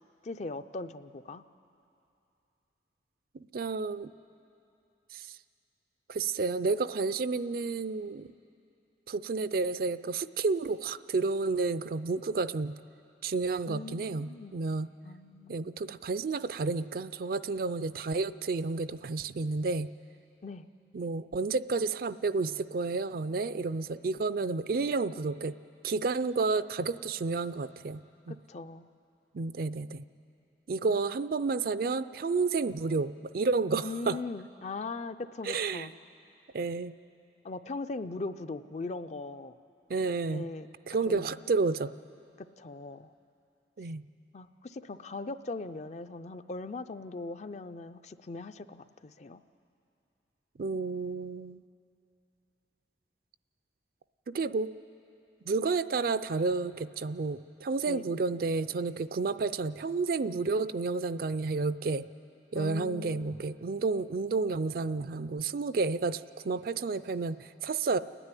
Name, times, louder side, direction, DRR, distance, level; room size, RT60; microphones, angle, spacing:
voice 1, 0.2-1.4 13.7-14.5 15.0-15.8 20.4-20.7 28.3-28.9 30.8-31.0 33.8-35.9 37.4-39.5 40.3-40.7 41.1-41.4 42.6-43.1 44.3-49.4 57.9-58.0 62.6-63.4, left 3 dB, 40° left, 11 dB, 0.5 m, -40 dB
voice 2, 3.3-4.1 5.1-5.3 6.1-8.3 9.1-12.8 13.2-14.9 15.5-19.9 20.9-25.5 25.8-28.4 29.3-30.0 30.7-34.2 35.4-35.9 36.5-36.9 39.9-40.5 40.9-41.9 43.8-44.0 50.6-51.6 54.3-54.7 55.4-62.1 62.5-68.0, right 4 dB, 55° right, 14 dB, 0.4 m, -31 dB
30.0 x 10.0 x 9.8 m, 2.7 s
head